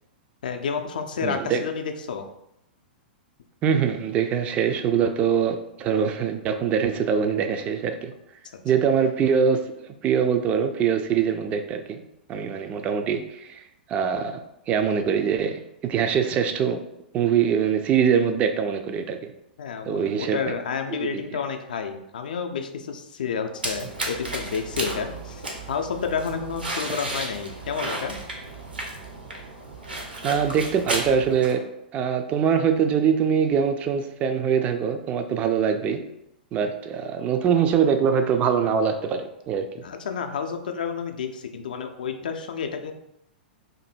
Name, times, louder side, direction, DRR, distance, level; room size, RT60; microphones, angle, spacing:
voice 1, 0.4-2.3 19.6-28.2 39.8-42.9, left 6 dB, 60° left, 6 dB, 0.4 m, -30 dB
voice 2, 1.2-1.6 3.6-8.1 8.6-9.7 10.0-12.0 12.3-13.6 13.9-16.8 17.1-19.3 19.9-20.4 21.1-21.2 30.2-31.6 31.9-36.0 36.5-39.7, right 7 dB, 25° right, 7 dB, 0.3 m, -23 dB
Wet Steps on Liquid and Dirt, 23.6-31.5, right 2 dB, 75° right, 0.8 m, -33 dB
2.6 x 2.6 x 4.2 m, 0.83 s
figure-of-eight pair, 105°, 5 cm